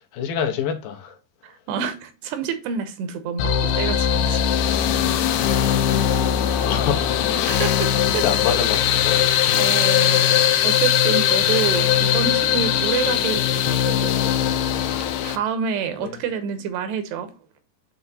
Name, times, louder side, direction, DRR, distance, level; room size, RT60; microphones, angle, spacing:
voice 1, 0.1-1.2 4.5-6.2 6.6-9.3 14.6-15.4 16.0-16.2, left 7 dB, 75° left, 2.4 m, -30 dB
voice 2, 1.4-4.4 4.8-5.4 6.5-6.6 7.3-7.9 8.1-8.2 9.6-10.2 10.6-14.1 15.2-17.3, right 7 dB, 85° right, 3.0 m, -28 dB
sound 1, 3.4-15.4, left 9 dB, 90° left, 2.7 m, -20 dB
8.0 x 3.5 x 4.0 m
omnidirectional pair, 4.7 m